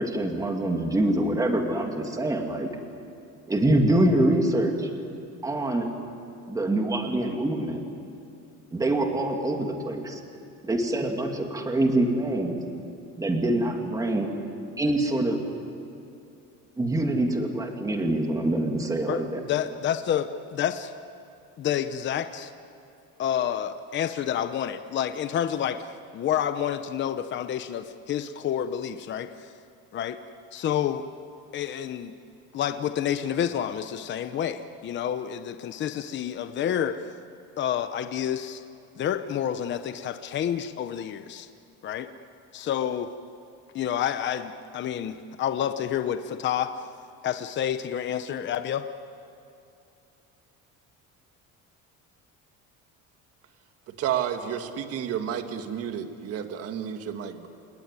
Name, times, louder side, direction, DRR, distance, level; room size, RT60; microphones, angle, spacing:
voice 1, 0.0-2.7 3.5-4.9 5.4-5.9 6.5-7.8 8.7-10.2 10.6-12.6 13.2-14.3 14.8-15.4 16.8-19.4, right 1 dB, 10° right, 3 dB, 2.3 m, -25 dB
voice 2, 19.1-20.9 21.6-22.5 23.2-25.8 26.1-29.3 29.9-30.2 30.5-31.0 31.5-32.1 32.5-37.1 37.6-38.6 39.0-41.5 41.8-42.1 42.5-43.1 43.7-46.7 47.2-48.8, left 9 dB, 35° left, 9 dB, 0.9 m, -29 dB
voice 3, 54.0-57.5, right 9 dB, 50° right, 7 dB, 1.8 m, -31 dB
27.5 x 20.0 x 9.8 m, 2.6 s
cardioid pair, 160°, 31 cm